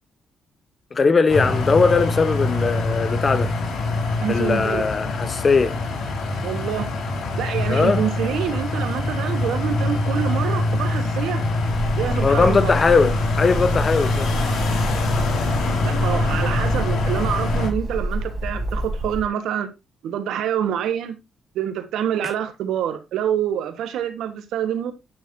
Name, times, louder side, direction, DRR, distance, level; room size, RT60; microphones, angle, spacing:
voice 1, 0.9-3.5 4.3-5.8 7.7-8.0 12.1-14.3, left 4 dB, 35° left, 0.9 m, -19 dB
sound 1, 1.3-17.7, left 2 dB, 70° left, 4.0 m, -24 dB
voice 2, 4.2-4.9 6.4-6.9 7.4-11.4 12.0-12.7 15.8-19.7 20.0-21.2 21.5-24.9, right 9 dB, 90° right, 1.4 m, -26 dB
Bird, 11.6-19.3, right 1 dB, 40° right, 4.2 m, -29 dB
10.0 x 6.3 x 2.7 m
cardioid pair, 110°, 0 cm